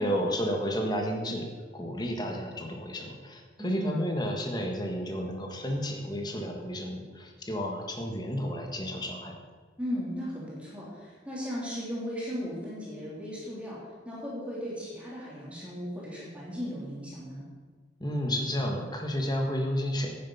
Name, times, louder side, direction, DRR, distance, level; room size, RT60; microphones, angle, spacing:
voice 1, 0.0-1.5 1.7-9.3 18.0-20.1, equal, 20° left, 2 dB, 1.5 m, -31 dB
voice 2, 3.6-3.9 9.8-13.8 14.0-17.4, equal, 5° right, -7 dB, 3.2 m, -36 dB
10.0 x 9.4 x 5.6 m, 1.4 s
head